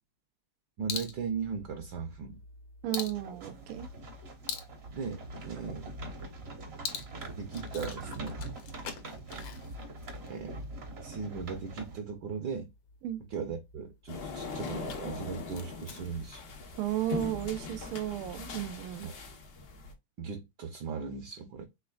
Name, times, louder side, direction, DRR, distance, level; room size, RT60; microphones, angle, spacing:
sound 1, 0.8-18.8, left 6 dB, 70° left, 1.6 m, -46 dB
voice 1, 0.8-2.4 4.9-5.9 7.4-8.4 10.3-10.6 11.0-12.7 13.2-16.4 19.0-19.2 20.2-21.6, right 5 dB, 65° right, 1.2 m, -38 dB
voice 2, 2.8-3.9 13.0-13.2 16.8-19.1, right 12 dB, 90° right, 1.5 m, -34 dB
sound 2, 2.9-12.0, right 2 dB, 45° right, 0.8 m, -43 dB
sound 3, 14.1-19.9, left 4 dB, 90° left, 0.5 m, -41 dB
5.5 x 3.4 x 2.3 m
omnidirectional pair, 2.4 m